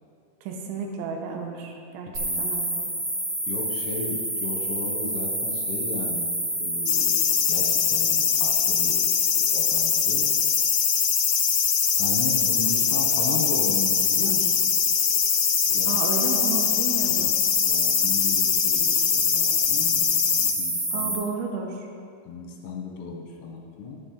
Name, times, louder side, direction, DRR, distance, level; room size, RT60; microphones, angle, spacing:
voice 1, 0.4-2.8 15.9-17.3 20.9-21.9, right 5 dB, 80° right, 2 dB, 3.3 m, -32 dB
sound 1, 2.1-21.1, right 1 dB, 30° right, 2.8 m, -28 dB
voice 2, 2.2-2.5 3.5-6.3 6.6-9.0 9.3-10.3 12.0-14.6 15.6-16.0 17.1-21.2 22.3-24.0, left 4 dB, 70° left, 0 dB, 3.1 m, -35 dB
sound 2, 6.9-20.5, left 12 dB, 90° left, 2.3 m, -23 dB
14.0 x 7.4 x 4.0 m, 2.3 s
omnidirectional pair, 5.4 m